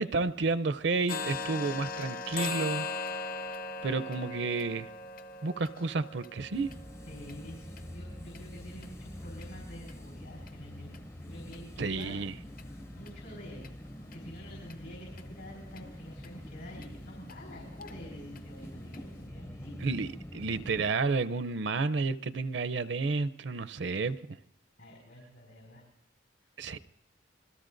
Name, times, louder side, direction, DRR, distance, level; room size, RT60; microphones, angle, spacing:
voice 1, 0.0-2.9 3.8-4.9 5.4-6.7 11.8-12.3 19.8-24.4 26.6-26.8, right 3 dB, 60° right, 0.5 m, -31 dB
sound 1, 1.1-8.9 9.3-9.5 9.9-10.0 10.5-10.6 10.9-11.0 11.5-11.6 12.0-12.1 12.6-12.7 13.1-13.2 13.6-13.7 14.1-14.2 14.7-14.8 15.2-15.3 15.8-15.9 16.2-16.3 16.8-16.9 17.3-17.4 17.8-17.9 18.4-18.5 18.9-19.0, left 4 dB, 45° left, 0.7 m, -39 dB
sound 2, 6.5-20.9, equal, 15° left, 0.5 m, -45 dB
voice 2, 7.1-12.2 12.5-20.0 24.8-25.8 26.4-26.5, equal, 75° left, 4.9 m, -48 dB
27.0 x 20.5 x 2.6 m
head